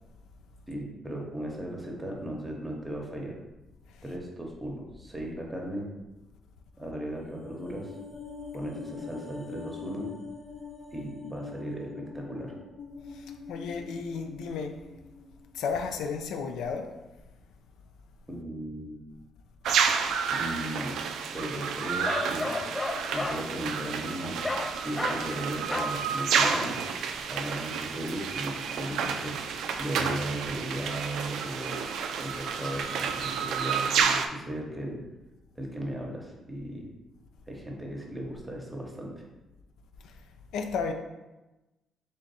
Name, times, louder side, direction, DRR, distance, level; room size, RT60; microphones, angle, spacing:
voice 1, 0.7-3.3 4.0-5.9 6.8-7.9 8.5-10.1 10.9-12.5 18.3-19.0 20.3-21.0 21.3-22.6 23.1-24.4 24.8-26.8 27.3-29.3 29.8-31.8 32.2-35.0 35.6-36.9 37.5-39.2, right 1 dB, 10° right, -1 dB, 0.9 m, -36 dB
sound 1, 7.1-15.6 15.9-16.0, left 5 dB, 55° left, 1.3 m, -44 dB
voice 2, 13.1-14.7 15.5-16.9 40.0-40.1 40.5-40.9, left 5 dB, 85° left, 5 dB, 0.4 m, -33 dB
sound 2, 19.6-34.3, right 6 dB, 80° right, 0.3 m, -30 dB
Bark, 22.1-23.4 24.4-24.7 25.0-25.2 25.7-26.0 26.4-26.7, left 2 dB, 15° left, 0.4 m, -31 dB
3.5 x 2.5 x 4.1 m, 1.0 s
cardioid pair, 90°, 0 cm